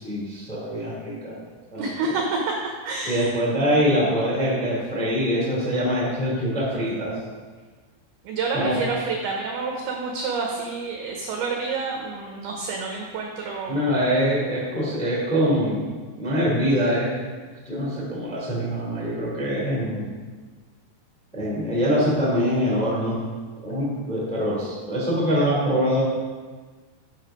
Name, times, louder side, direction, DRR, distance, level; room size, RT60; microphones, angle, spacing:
voice 1, 0.0-1.4 1.7-2.1 3.0-7.2 8.5-8.8 13.7-15.8 16.2-17.1 17.6-20.0 21.3-23.2 23.6-26.0, equal, 5° left, -5 dB, 1.2 m, -24 dB
voice 2, 1.8-3.3 8.2-13.9, right 4 dB, 80° right, 1 dB, 2.3 m, -28 dB
7.9 x 6.6 x 5.1 m, 1.4 s
omnidirectional pair, 5.5 m